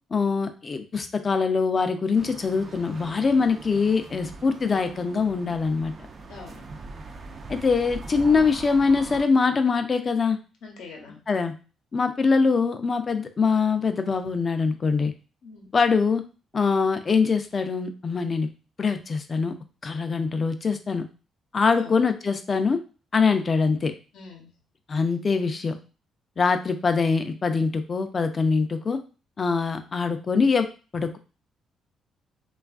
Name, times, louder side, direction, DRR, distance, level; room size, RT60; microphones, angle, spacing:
voice 1, 0.1-5.9 7.5-10.4 11.3-11.5 11.9-15.1 15.7-16.2 16.5-18.5 18.8-19.6 19.8-21.0 21.5-22.8 23.1-23.9 24.9-25.8 26.4-29.0 29.4-30.7 30.9-31.2, left 4 dB, 40° left, 8 dB, 0.4 m, -23 dB
sound 1, 2.1-9.3, right 3 dB, 45° right, 0.4 m, -41 dB
voice 2, 6.3-6.6 10.6-11.2 15.4-15.7 21.7-21.9 23.2-23.4 24.1-24.5, left 4 dB, 80° left, 1 dB, 0.7 m, -44 dB
3.2 x 2.3 x 2.3 m, 0.34 s
cardioid pair, 90°, 0 cm